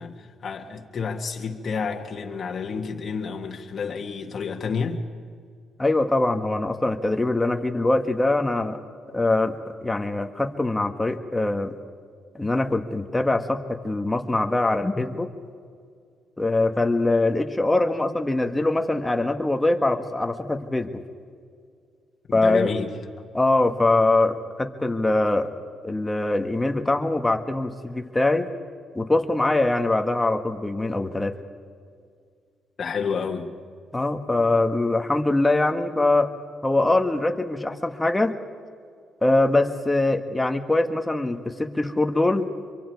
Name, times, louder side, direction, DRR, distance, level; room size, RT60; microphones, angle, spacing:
voice 1, 0.0-5.1 22.4-22.9 32.8-33.5, left 5 dB, 45° left, 2 dB, 1.7 m, -30 dB
voice 2, 5.8-8.8 9.1-9.6 9.8-11.7 12.4-15.3 16.4-21.0 22.3-22.7 23.3-25.5 25.8-28.5 29.0-31.3 33.9-36.3 36.6-38.3 39.2-42.5, left 2 dB, 15° left, 6 dB, 1.6 m, -23 dB
25.5 x 23.5 x 4.7 m, 2.1 s
cardioid pair, 90°, 0 cm